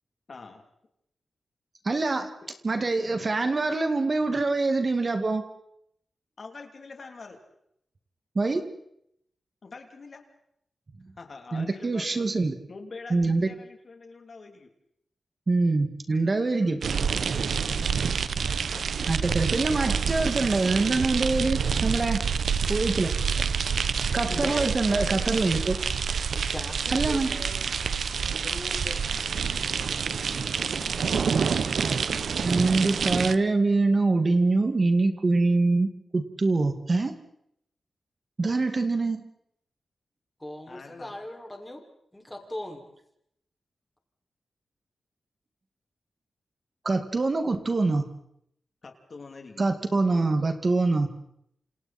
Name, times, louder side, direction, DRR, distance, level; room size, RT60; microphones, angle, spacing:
voice 1, 0.3-0.6 6.4-7.4 9.6-10.3 11.2-12.3 12.7-14.7 24.9-25.7 40.7-41.1 48.8-49.7, left 4 dB, 55° left, 4 dB, 3.2 m, -44 dB
voice 2, 1.8-2.3 2.6-5.4 8.4-8.7 11.5-12.5 13.1-13.5 15.5-16.8 19.1-22.2 22.7-23.1 24.1-25.8 26.9-27.4 32.4-37.1 38.4-39.3 46.8-48.0 49.6-51.1, right 3 dB, 40° right, 7 dB, 2.1 m, -24 dB
sound 1, 16.8-33.3, right 6 dB, 75° right, 1.0 m, -27 dB
voice 3, 24.3-25.0 26.3-27.6 28.4-29.0 40.4-41.8 42.1-42.8, left 1 dB, 10° left, 1 dB, 5.6 m, -39 dB
28.0 x 27.0 x 4.4 m, 0.75 s
cardioid pair, 75°, 0 cm